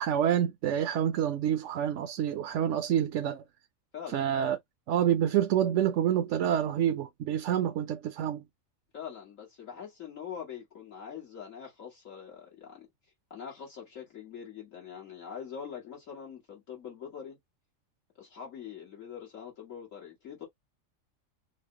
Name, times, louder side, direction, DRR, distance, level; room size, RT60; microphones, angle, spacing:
voice 1, 0.0-3.4 4.1-4.6 4.9-8.4, right 10 dB, 70° right, 0.9 m, -27 dB
voice 2, 3.9-4.2 8.9-12.9 13.3-17.4 18.2-20.5, left 7 dB, 80° left, 2.3 m, -43 dB
6.3 x 2.1 x 2.8 m
omnidirectional pair, 1.3 m